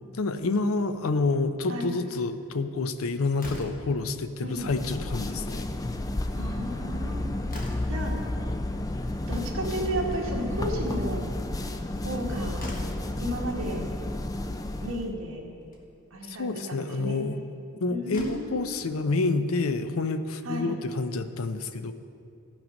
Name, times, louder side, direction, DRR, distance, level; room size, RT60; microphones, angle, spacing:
voice 1, 0.1-5.7 16.3-17.4 17.8-21.9, left 3 dB, 75° left, 10 dB, 0.5 m, -28 dB
Slam, 3.4-4.0 5.2-5.6 5.9-6.0 6.3-6.4 6.9-8.1 9.8-10.5 12.1-12.2 12.6-13.1 14.2-14.3 14.7-14.8 15.6-15.8 17.5-17.6 18.0-18.6, left 1 dB, 40° left, 1.4 m, -40 dB
voice 2, 4.4-4.7 6.3-7.3 7.9-8.1 9.3-11.3 12.0-12.6 13.2-13.9 14.8-15.4 16.1-17.2 17.9-18.7 20.4-20.8, right 1 dB, 75° right, -1 dB, 1.8 m, -33 dB
sound 1, 4.5-15.1, left 1 dB, 15° left, 0.3 m, -32 dB
14.0 x 6.0 x 5.2 m, 2.5 s
head